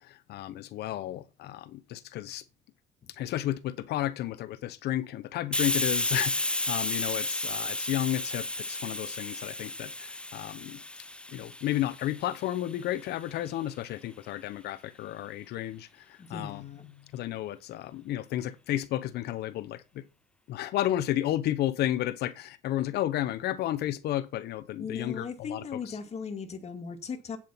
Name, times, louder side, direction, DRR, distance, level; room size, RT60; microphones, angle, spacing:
voice 1, 0.0-2.4 3.1-10.8 11.3-16.6 16.9-20.0 20.5-26.0, left 13 dB, 75° left, 1.0 m, -32 dB
Hiss, 5.5-12.9, left 1 dB, 5° left, 0.5 m, -32 dB
voice 2, 16.2-16.9 24.8-27.4, left 5 dB, 40° left, 2.2 m, -38 dB
8.9 x 7.5 x 5.8 m
cardioid pair, 110°, 17 cm